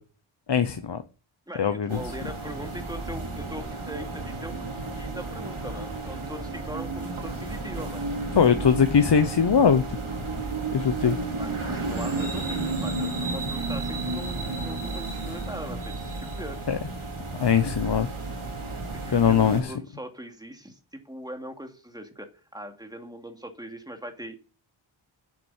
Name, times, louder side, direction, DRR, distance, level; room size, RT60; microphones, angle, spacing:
voice 1, 0.5-1.0 1.6-2.0 8.3-9.8 10.7-11.2 16.7-16.8 17.4-18.1 19.1-19.6, left 7 dB, 55° left, 9 dB, 0.9 m, -21 dB
voice 2, 1.5-4.5 5.0-8.1 11.0-16.6 19.0-20.8 21.0-24.3, right 1 dB, 10° right, 5 dB, 2.5 m, -40 dB
sound 1, 1.9-19.6, right 3 dB, 75° right, 3.1 m, -32 dB
8.3 x 7.8 x 7.3 m, 0.36 s
wide cardioid pair, 55°, 49 cm